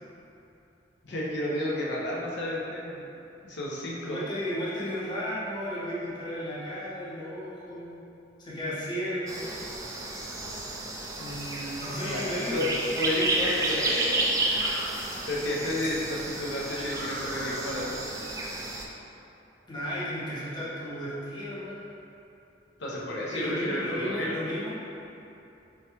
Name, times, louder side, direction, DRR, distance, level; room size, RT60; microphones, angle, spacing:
voice 1, 1.0-3.2 3.4-4.2 11.2-12.7 13.0-14.3 15.3-18.0 22.8-24.3, left 1 dB, 75° left, -5 dB, 0.5 m, -32 dB
voice 2, 4.0-8.0 8.4-9.5 11.8-12.7 19.7-21.8 23.3-24.7, equal, 25° left, -9 dB, 0.7 m, -33 dB
sound 1, 9.3-18.8, right 2 dB, 20° right, 0.3 m, -31 dB
sound 2, 11.8-12.1 14.4-15.0 16.7-17.7, equal, 65° right, 0.6 m, -40 dB
4.6 x 2.1 x 2.8 m, 2.8 s
head